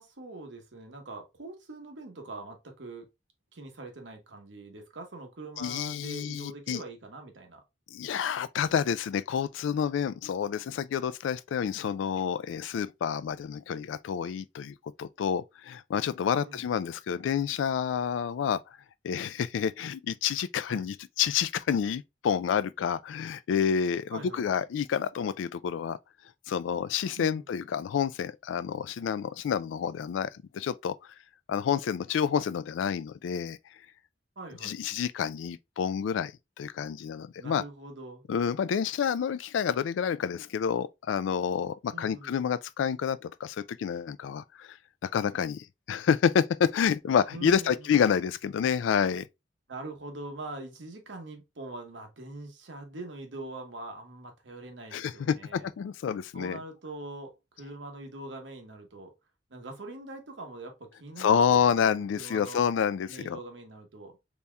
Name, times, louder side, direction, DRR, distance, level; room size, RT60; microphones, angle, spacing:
voice 1, 0.0-3.1 3.5-7.6 16.3-16.7 20.7-20.9 24.1-24.4 27.2-27.4 34.4-34.8 37.4-38.2 41.9-42.4 47.3-48.0 49.7-55.7 56.3-59.1 59.5-61.7 62.2-62.7 63.1-64.2, right 2 dB, 70° right, 1.0 m, -43 dB
voice 2, 5.6-6.8 7.9-18.6 19.0-26.0 26.5-30.9 31.5-33.6 34.6-36.3 36.6-37.6 38.3-44.8 45.0-49.3 54.9-56.6 61.2-63.4, left 7 dB, 85° left, 0.3 m, -29 dB
4.1 x 3.5 x 2.2 m
head